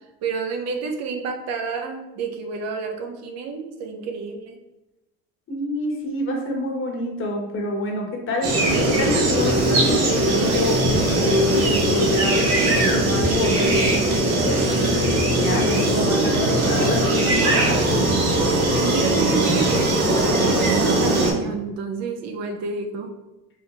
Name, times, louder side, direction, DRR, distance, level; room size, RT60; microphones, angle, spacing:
voice 1, 0.2-4.6 18.8-23.2, right 4 dB, 60° right, 4 dB, 0.8 m, -29 dB
voice 2, 5.5-17.8, left 1 dB, 45° left, 0 dB, 1.4 m, -27 dB
sound 1, 8.4-21.3, right 1 dB, 85° right, 1.3 m, -20 dB
4.5 x 3.8 x 2.6 m, 0.98 s
supercardioid pair, 95°, 29 cm